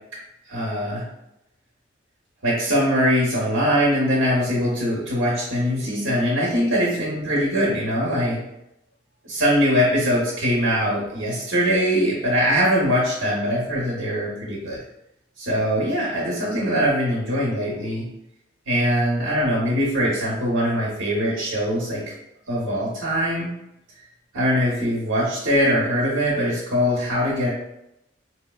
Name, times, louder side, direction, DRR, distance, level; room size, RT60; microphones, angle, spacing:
voice 1, 0.5-1.0 2.4-8.4 9.2-14.8 15.4-18.1 18.7-22.0 22.5-23.5 24.3-27.5, equal, 85° right, -5 dB, 0.9 m, -22 dB
4.4 x 2.0 x 2.3 m, 0.82 s
head